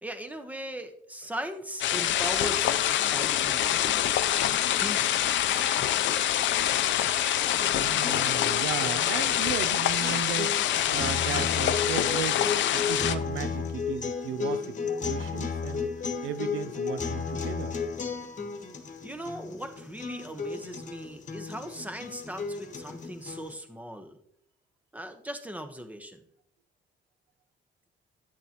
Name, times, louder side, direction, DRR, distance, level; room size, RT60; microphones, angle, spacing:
voice 1, 0.0-6.2 19.0-24.2 24.9-26.2, right 1 dB, 5° right, 1.0 m, -39 dB
sound 1, 1.8-13.2, left 11 dB, 70° left, 0.5 m, -26 dB
sound 2, 7.5-23.5, left 5 dB, 40° left, 1.2 m, -34 dB
voice 2, 7.7-10.6 10.9-17.8, right 10 dB, 90° right, 0.5 m, -36 dB
10.5 x 6.9 x 2.9 m
cardioid pair, 90°, 20 cm